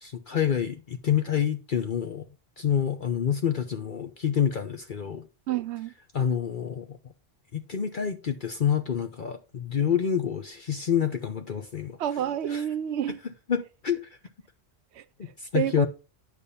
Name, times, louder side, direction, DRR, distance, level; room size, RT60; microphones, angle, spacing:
voice 1, 0.0-2.3 2.6-5.2 6.1-7.0 7.5-12.0 12.5-12.6 13.5-14.0 15.2-15.9, left 8 dB, 50° left, 0.9 m, -27 dB
voice 2, 5.5-5.9 12.0-13.2 14.9-15.0 15.5-15.9, right 10 dB, 70° right, 0.9 m, -28 dB
9.9 x 3.5 x 7.0 m
omnidirectional pair, 1.2 m